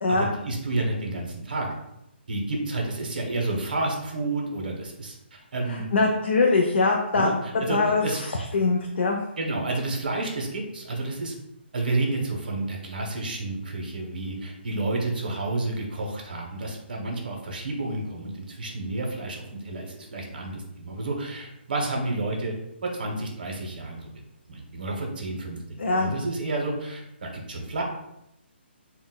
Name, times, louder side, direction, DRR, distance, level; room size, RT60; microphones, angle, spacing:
voice 1, 0.1-1.7 2.3-5.9 7.1-8.2 9.4-11.3 11.7-22.5 22.8-24.1 24.5-27.8, right 2 dB, 50° right, 0 dB, 0.7 m, -30 dB
voice 2, 5.7-8.0 8.5-9.2 25.8-26.1, left 3 dB, 75° left, 0 dB, 0.4 m, -22 dB
3.8 x 2.1 x 2.2 m, 0.85 s
hypercardioid pair, 180°, 6 cm